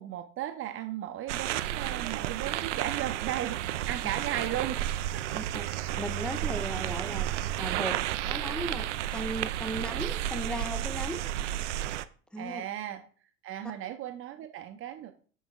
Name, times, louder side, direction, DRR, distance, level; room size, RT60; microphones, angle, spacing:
voice 1, 0.0-4.8 5.1-5.2 12.4-13.0 13.4-15.1, right 12 dB, 35° right, 7 dB, 0.7 m, -36 dB
sound 1, 1.3-12.1, right 13 dB, 70° right, 0.5 m, -32 dB
voice 2, 5.3-7.3 7.6-7.9 8.3-11.2 12.3-12.6, equal, ahead, 9 dB, 0.5 m, -37 dB
8.5 x 5.5 x 2.4 m, 0.41 s
figure-of-eight pair, 80°, 38 cm